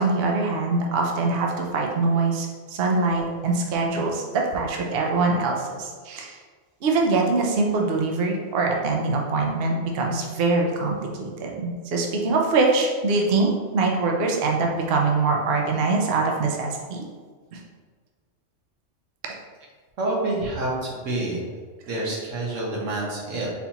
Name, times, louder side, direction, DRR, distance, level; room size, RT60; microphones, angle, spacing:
voice 1, 0.0-6.4 6.8-11.5 11.9-17.1 17.5-17.6, right 3 dB, 60° right, 0 dB, 0.8 m, -23 dB
voice 2, 20.0-21.5 21.9-23.5, right 2 dB, 90° right, -3 dB, 1.4 m, -27 dB
4.1 x 4.1 x 2.9 m, 1.5 s
omnidirectional pair, 1.3 m